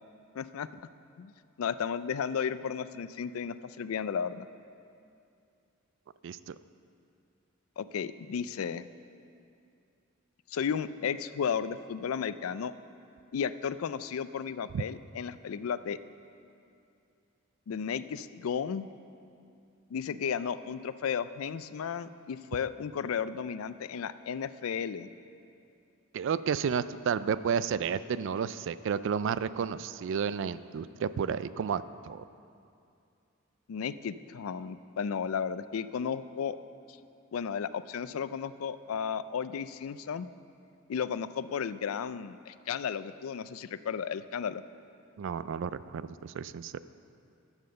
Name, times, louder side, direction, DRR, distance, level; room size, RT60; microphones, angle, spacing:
voice 1, 0.3-0.7 1.2-1.3 1.6-4.5 7.8-8.9 10.5-12.7 13.3-16.0 17.7-18.9 19.9-25.1 33.7-36.6 37.3-40.3 40.9-44.6, left 7 dB, 85° left, 14 dB, 0.4 m, -34 dB
voice 2, 6.2-6.6 14.7-14.8 26.1-32.2 45.2-46.8, right 7 dB, 60° right, 15 dB, 0.3 m, -32 dB
11.5 x 7.3 x 6.7 m, 2.5 s
head